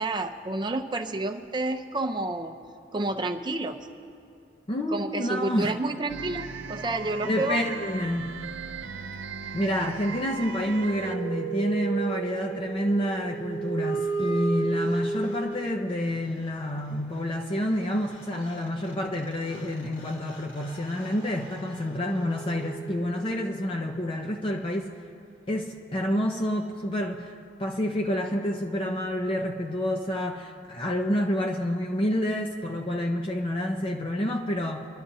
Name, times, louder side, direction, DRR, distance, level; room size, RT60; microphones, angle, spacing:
voice 1, 0.0-2.6 2.9-3.8 4.9-7.6, right 2 dB, 25° right, 6 dB, 0.6 m, -30 dB
voice 2, 4.7-5.8 7.2-8.3 9.5-25.0 25.5-27.3 27.6-34.9, equal, 30° left, 1 dB, 0.7 m, -28 dB
sound 1, 6.1-11.2, right 5 dB, 75° right, 0.5 m, -37 dB
sound 2, 10.7-15.9 17.8-17.9 18.1-23.6, right 4 dB, 75° left, 2.7 m, -34 dB
24.5 x 12.0 x 2.7 m, 2.5 s
head